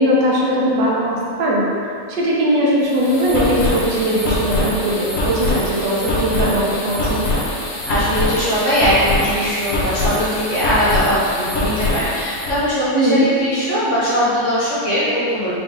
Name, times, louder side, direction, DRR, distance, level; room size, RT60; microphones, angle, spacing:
voice 1, 0.0-1.6 2.1-7.2 12.9-13.3, equal, 85° right, -5 dB, 1.5 m, -19 dB
sound 1, 2.8-12.6, left 2 dB, 55° left, 1.1 m, -23 dB
voice 2, 7.8-15.5, equal, 35° left, -10 dB, 1.0 m, -20 dB
5.2 x 2.3 x 3.9 m, 2.4 s
omnidirectional pair, 1.9 m